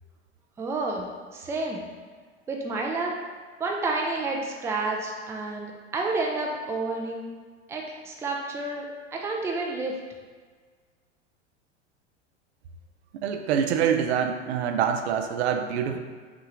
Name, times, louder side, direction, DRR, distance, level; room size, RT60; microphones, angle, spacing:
voice 1, 0.6-1.1 1.3-1.8 2.5-3.2 3.6-7.3 7.7-9.9, right 3 dB, 10° right, 0 dB, 0.4 m, -30 dB
voice 2, 13.2-16.0, right 8 dB, 65° right, 5 dB, 0.5 m, -25 dB
5.8 x 2.4 x 3.0 m, 1.5 s
hypercardioid pair, 95°, 36 cm